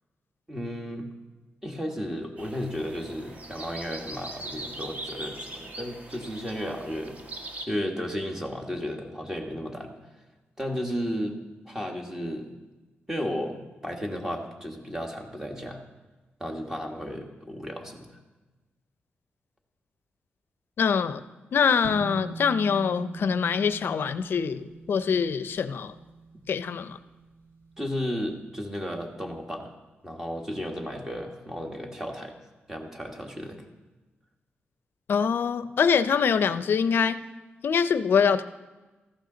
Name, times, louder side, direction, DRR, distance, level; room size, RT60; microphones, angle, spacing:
voice 1, 0.5-1.1 1.6-7.2 7.7-10.0 10.6-11.4 11.7-12.5 13.1-15.8 16.4-18.2 27.8-29.7 30.0-32.4 32.7-33.7, equal, 10° right, 2 dB, 1.5 m, -34 dB
sound 1, 2.4-7.7, right 2 dB, 40° right, 1.3 m, -41 dB
voice 2, 20.8-21.2 21.5-25.9 26.5-27.0 35.1-37.2 37.6-38.4, left 6 dB, 65° left, 13 dB, 0.5 m, -24 dB
sound 2, 21.8-28.4, right 4 dB, 60° right, 1.8 m, -43 dB
14.5 x 11.5 x 3.9 m, 1.2 s
wide cardioid pair, 125°, 4 cm